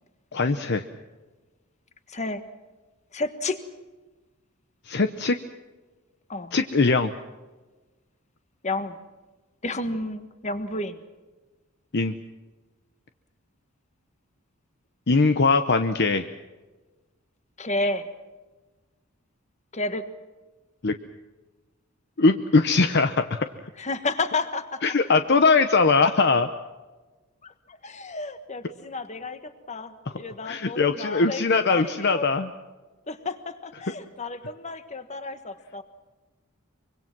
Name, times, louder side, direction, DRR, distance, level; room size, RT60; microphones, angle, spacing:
voice 1, 0.3-0.8 4.9-5.4 6.5-7.1 11.9-12.1 15.1-16.3 20.8-20.9 22.2-23.4 24.8-26.5 30.4-32.5, left 4 dB, 50° left, 9 dB, 0.8 m, -21 dB
voice 2, 2.1-2.5 3.1-3.6 6.3-6.5 8.6-9.0 9.6-11.0 17.6-18.1 19.7-20.1 23.8-24.8 27.4-32.3 33.1-35.8, left 2 dB, 30° left, 10 dB, 1.5 m, -31 dB
24.5 x 24.0 x 6.1 m, 1.2 s
head